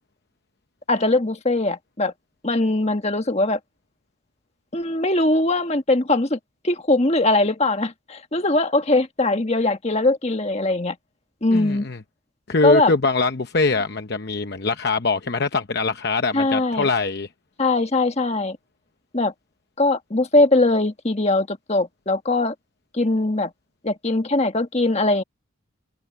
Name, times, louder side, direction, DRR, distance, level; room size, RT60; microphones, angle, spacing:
voice 1, 0.9-2.1 2.4-3.6 4.7-6.4 6.6-11.0 11.4-11.9 12.6-12.9 16.3-16.9 17.6-18.6 19.1-19.3 19.8-22.5 22.9-23.5 23.8-25.2, left 2 dB, 30° left, 1.5 m, -21 dB
voice 2, 11.5-12.0 12.5-17.3, left 3 dB, 50° left, 0.9 m, -22 dB
head